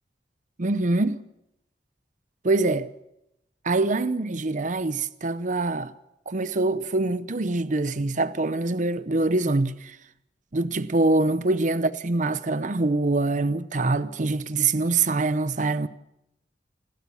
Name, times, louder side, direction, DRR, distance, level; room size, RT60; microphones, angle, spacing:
voice 1, 0.6-1.2 2.4-2.9 3.6-5.9 6.3-10.0 10.5-15.9, right 2 dB, 45° right, 0.8 m, -24 dB
28.5 x 13.0 x 7.0 m
head